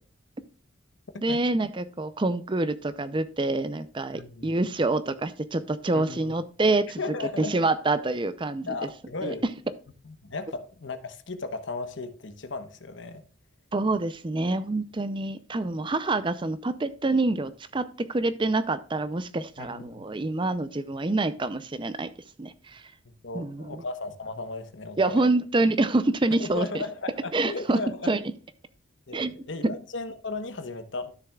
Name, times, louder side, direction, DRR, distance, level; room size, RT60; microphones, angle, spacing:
voice 1, 1.2-7.0 7.4-8.8 9.2-9.3 13.7-22.1 22.4-22.9 23.3-23.8 25.0-26.8 27.3-27.8 28.1-28.2 29.1-29.3, right 2 dB, 25° right, 13 dB, 0.5 m, -26 dB
voice 2, 4.1-4.5 5.9-6.3 7.0-7.7 8.6-9.4 10.0-13.2 19.6-20.1 23.0-25.2 26.4-28.1 29.1-31.1, left 3 dB, 65° left, 10 dB, 1.0 m, -36 dB
12.5 x 6.8 x 2.3 m, 0.40 s
head